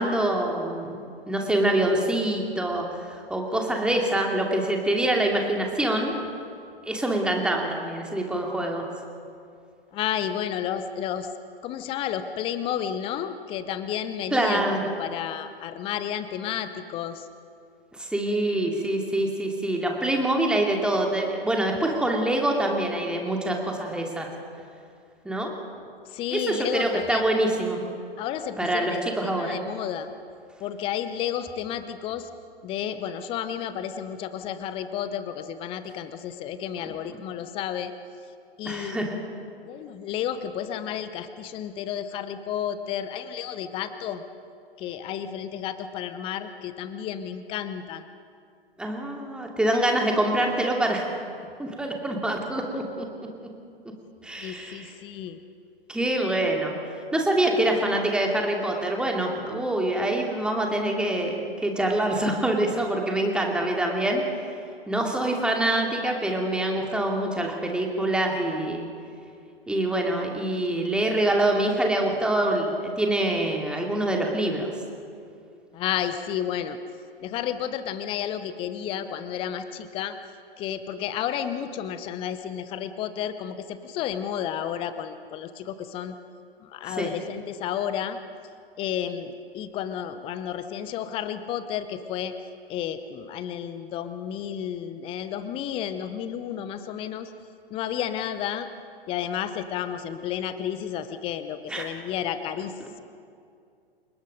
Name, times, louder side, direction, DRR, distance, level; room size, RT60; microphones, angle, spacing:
voice 1, 0.0-6.1 6.8-8.9 14.3-14.9 17.9-24.3 25.2-25.5 26.3-27.8 28.6-29.6 38.6-39.2 48.8-51.1 51.6-53.1 54.2-54.9 55.9-56.8 57.1-64.2 64.9-68.9 69.7-74.7 87.0-87.1 101.7-101.9, right 1 dB, 5° right, 1 dB, 2.6 m, -25 dB
voice 2, 9.9-11.3 11.6-17.3 26.1-27.2 28.2-30.1 30.6-32.3 32.6-37.9 38.6-39.1 39.7-44.2 44.8-48.0 54.4-55.4 75.7-76.8 77.2-80.2 80.6-86.2 86.6-88.2 88.8-92.3 92.7-97.3 97.7-98.7 99.1-103.0, left 9 dB, 20° left, 11 dB, 0.9 m, -32 dB
29.0 x 19.0 x 5.3 m, 2.4 s
figure-of-eight pair, 115°, 30 cm